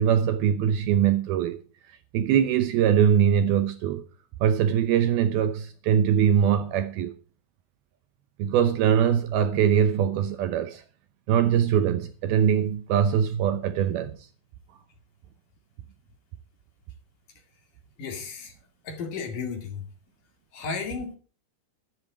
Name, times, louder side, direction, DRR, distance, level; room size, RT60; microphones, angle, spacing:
voice 1, 0.0-1.6 1.9-4.0 4.4-7.1 8.4-10.8 11.3-14.3, right 9 dB, 75° right, 2.4 m, -22 dB
voice 2, 18.0-18.5 18.8-19.8 20.5-21.2, left 5 dB, 55° left, 3.5 m, -33 dB
12.5 x 12.0 x 4.6 m
omnidirectional pair, 5.0 m